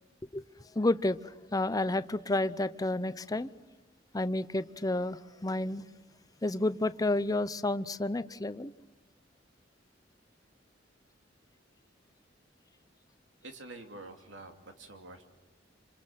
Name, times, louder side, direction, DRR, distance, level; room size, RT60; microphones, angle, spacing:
voice 1, 0.7-3.5 4.1-5.9 6.4-8.7, left 2 dB, 20° left, 14 dB, 0.7 m, -30 dB
voice 2, 13.4-15.3, right 2 dB, 80° right, 5 dB, 2.8 m, -47 dB
27.5 x 27.0 x 5.8 m, 1.1 s
head